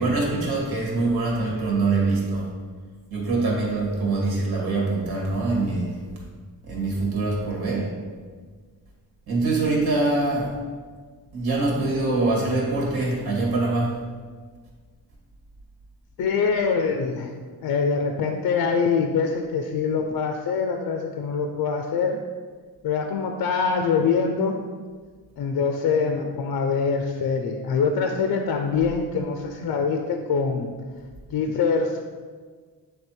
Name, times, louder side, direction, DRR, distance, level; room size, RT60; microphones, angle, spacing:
voice 1, 0.0-2.5 3.1-6.0 6.6-7.9 9.3-10.5 11.3-14.0, right 3 dB, 75° right, -2 dB, 2.0 m, -24 dB
voice 2, 16.2-17.3 17.6-22.2 22.8-24.6 25.4-30.7 31.3-32.0, left 5 dB, 65° left, 5 dB, 0.6 m, -24 dB
8.5 x 3.4 x 4.4 m, 1.5 s
wide cardioid pair, 170°, 38 cm